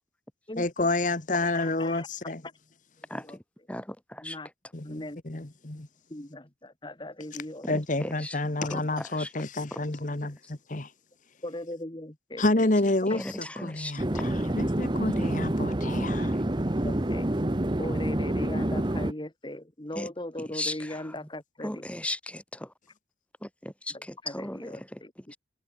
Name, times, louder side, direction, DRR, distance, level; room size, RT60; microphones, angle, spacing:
voice 1, 0.6-2.4 4.7-5.9 7.7-10.9 12.4-16.3, left 2 dB, 40° left, 1.3 m, -29 dB
voice 2, 1.3-2.1 3.1-3.4 4.2-4.5 4.8-5.2 6.1-7.7 8.0-8.1 11.4-12.7 13.1-13.2 16.8-17.3 17.8-21.8 24.2-25.1, left 1 dB, 25° left, 1.3 m, -39 dB
voice 3, 3.1-3.4 3.7-4.4 7.6-8.4 8.7-9.3 9.7-9.8 10.2-10.5 13.1-14.4 16.3-16.4 19.9-20.1 20.4-21.3 21.6-22.7 23.4-25.4, left 1 dB, 5° left, 2.8 m, -38 dB
sound 1, 14.0-19.1, right 1 dB, 25° right, 0.9 m, -27 dB
head